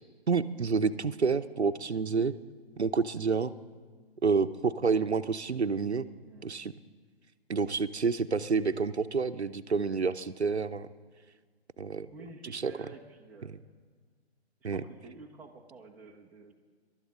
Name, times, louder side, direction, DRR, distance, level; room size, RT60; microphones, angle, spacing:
voice 1, 0.3-2.4 2.8-3.5 4.2-6.1 6.4-6.7 7.5-10.9 11.8-12.1 12.5-12.7 13.4-13.5 14.6-14.8, right 5 dB, 85° right, 12 dB, 0.8 m, -28 dB
voice 2, 6.2-6.6 12.1-13.6 14.6-16.5, right 3 dB, 5° right, -2 dB, 0.8 m, -50 dB
27.0 x 12.5 x 3.8 m, 1.6 s
figure-of-eight pair, 135°, 32 cm